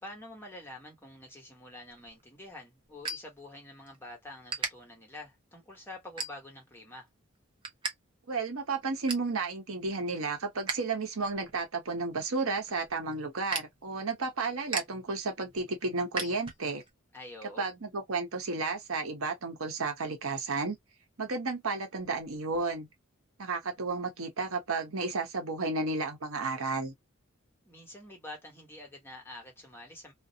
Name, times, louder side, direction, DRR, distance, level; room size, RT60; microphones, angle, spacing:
voice 1, 0.0-7.1 17.1-17.7 27.6-30.1, left 1 dB, 10° left, 1.0 m, -47 dB
sound 1, 1.9-4.0 4.3-4.7 5.3-5.5 6.0-6.7 7.1-7.9 8.2-8.3 8.7-9.3 9.8-10.8 11.1-16.9, right 3 dB, 25° right, 0.7 m, -39 dB
voice 2, 8.3-16.8 17.6-20.8 21.2-22.9 23.4-26.9, right 3 dB, 90° right, 0.9 m, -32 dB
2.5 x 2.0 x 2.7 m
head